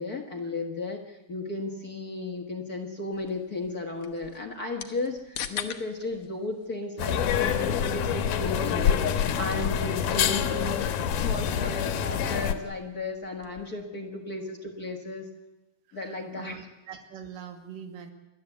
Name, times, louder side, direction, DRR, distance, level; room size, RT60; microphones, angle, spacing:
voice 1, 0.0-15.3 15.9-16.5, left 2 dB, 40° left, 3 dB, 1.5 m, -34 dB
sound 1, 3.1-13.8, left 9 dB, 60° left, 1.8 m, -45 dB
sound 2, 7.0-12.5, left 8 dB, 85° left, 2.7 m, -26 dB
voice 2, 16.0-18.1, right 7 dB, 90° right, 7 dB, 3.3 m, -43 dB
28.5 x 11.5 x 8.2 m, 1.0 s
omnidirectional pair, 3.7 m